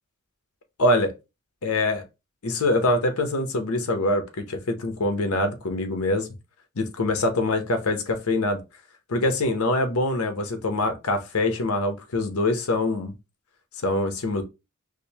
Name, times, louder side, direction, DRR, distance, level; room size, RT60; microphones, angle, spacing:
voice 1, 0.8-1.1 1.6-2.0 2.4-6.3 6.8-8.6 9.1-13.1 13.8-14.4, left 2 dB, 90° left, 0.8 m, -24 dB
4.9 x 2.1 x 2.8 m
head